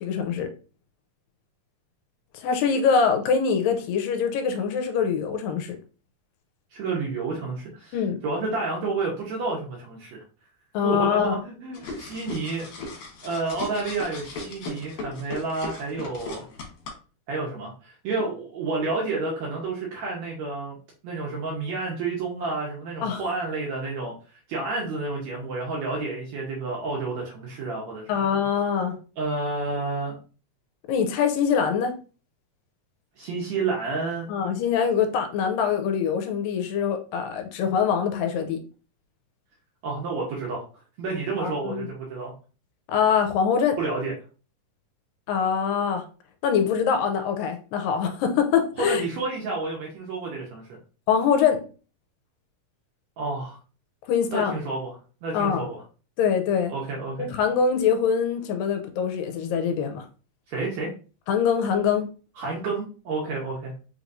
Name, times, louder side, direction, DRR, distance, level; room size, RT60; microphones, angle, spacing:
voice 1, 0.0-0.5 2.3-5.8 7.9-8.2 10.7-11.4 23.0-23.2 28.1-29.0 30.9-31.9 34.3-38.6 41.4-41.9 42.9-43.8 45.3-46.0 46.4-49.0 51.1-51.6 54.1-54.6 55.3-55.6 56.2-56.7 57.2-60.1 61.3-62.1, left 7 dB, 85° left, 2.2 m, -24 dB
voice 2, 6.7-8.0 8.2-10.2 10.8-12.7 13.2-16.5 17.3-20.8 21.0-24.1 24.5-28.3 29.2-30.2 33.2-34.3 39.8-40.6 41.0-42.3 43.8-44.1 48.8-50.8 53.2-53.6 54.3-54.9 55.2-55.8 56.7-57.3 60.5-60.9 62.4-63.7, right 3 dB, 70° right, 1.8 m, -30 dB
sound 1, 11.7-16.9, left 2 dB, 65° left, 2.3 m, -37 dB
5.6 x 3.0 x 2.5 m
omnidirectional pair, 4.0 m